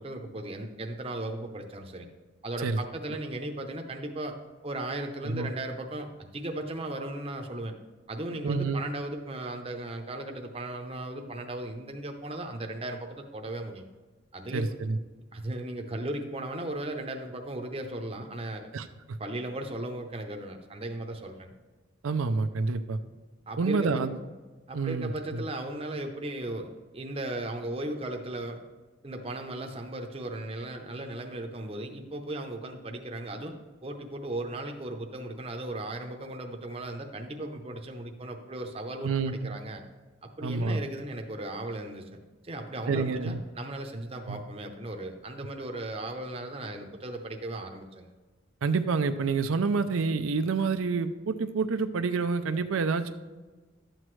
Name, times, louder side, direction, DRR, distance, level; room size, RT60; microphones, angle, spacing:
voice 1, 0.0-2.1 2.4-4.4 4.6-7.7 8.1-13.8 14.3-14.8 15.3-18.7 19.2-21.5 23.5-24.0 24.7-28.6 29.0-33.6 33.8-39.8 40.2-42.0 42.4-48.1, right 1 dB, 30° right, 4 dB, 0.7 m, -36 dB
voice 2, 8.4-8.8 14.5-15.0 18.7-18.9 22.0-23.0 23.6-24.1 24.7-25.4 39.0-39.6 40.4-40.8 42.9-43.4 44.3-44.4 48.6-53.1, right 4 dB, 90° right, 8 dB, 0.5 m, -28 dB
12.0 x 7.7 x 3.2 m, 1.3 s
head